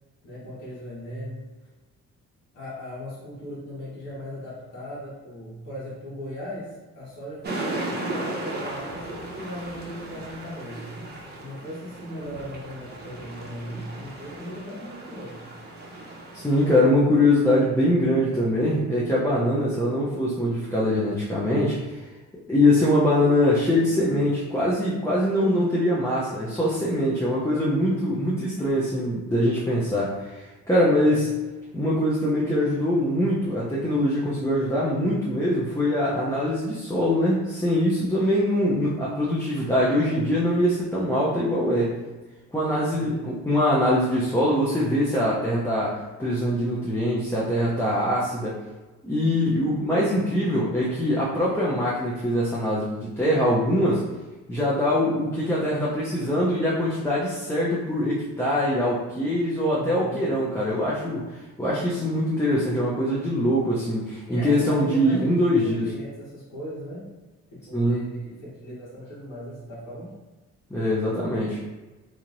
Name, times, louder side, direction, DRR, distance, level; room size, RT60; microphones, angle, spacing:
voice 1, 0.2-1.5 2.5-10.9 11.3-15.4 25.4-25.8 30.8-31.2 42.7-43.2 59.7-60.3 64.3-67.1 67.5-70.1, equal, 85° left, -9 dB, 1.4 m, -38 dB
sound 1, 7.4-16.8, right 2 dB, 35° right, 0.7 m, -36 dB
voice 2, 16.3-21.8 22.5-31.3 31.7-41.9 42.5-48.6 49.0-54.0 54.5-61.3 61.6-65.8 67.7-68.1 70.7-71.6, left 1 dB, 10° left, -7 dB, 0.6 m, -23 dB
3.1 x 2.8 x 2.6 m, 1.2 s
cardioid pair, 90°, 30 cm